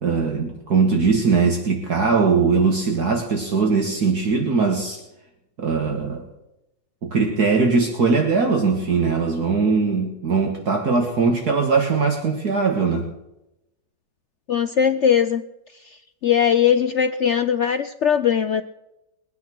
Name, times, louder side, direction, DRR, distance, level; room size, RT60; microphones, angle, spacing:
voice 1, 0.0-5.0 5.6-6.2 7.0-13.1, right 4 dB, 55° right, 3 dB, 2.2 m, -20 dB
voice 2, 14.5-15.4 16.2-18.6, left 8 dB, 70° left, 10 dB, 0.7 m, -19 dB
22.0 x 9.7 x 6.1 m, 0.91 s
omnidirectional pair, 2.0 m